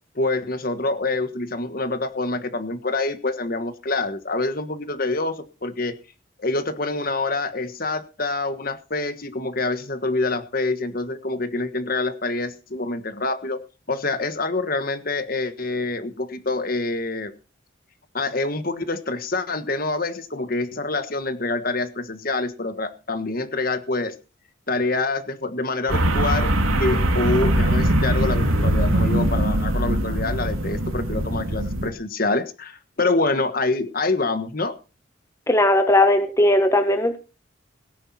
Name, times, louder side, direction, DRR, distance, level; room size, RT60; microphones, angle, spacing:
voice 1, 0.1-5.9 6.4-13.6 13.9-17.3 18.1-24.1 24.7-26.5 26.8-34.7, left 3 dB, 45° left, 10 dB, 1.4 m, -26 dB
sound 1, 25.9-31.9, right 1 dB, 90° right, 2.8 m, -21 dB
voice 2, 35.5-37.2, left 1 dB, 15° left, 7 dB, 1.2 m, -18 dB
17.5 x 10.5 x 4.2 m, 0.33 s
head